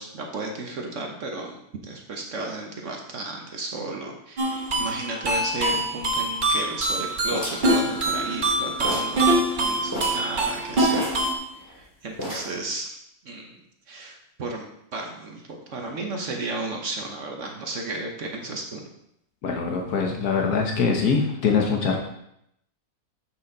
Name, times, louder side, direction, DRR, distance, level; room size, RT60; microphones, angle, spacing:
voice 1, 0.0-11.2 11.6-13.0 13.2-13.6 13.9-14.7 14.9-18.8, right 2 dB, 55° right, 2 dB, 1.2 m, -34 dB
sound 1, 4.4-11.3, right 1 dB, 35° right, 1.1 m, -24 dB
sound 2, 7.3-8.5 8.8-9.2 9.5-9.6 9.9-10.3 10.9-11.8 12.2-12.7, equal, 10° left, 2.6 m, -32 dB
voice 2, 19.4-22.0, left 5 dB, 80° left, 1 dB, 1.5 m, -23 dB
7.6 x 6.1 x 3.9 m, 0.76 s
omnidirectional pair, 1.6 m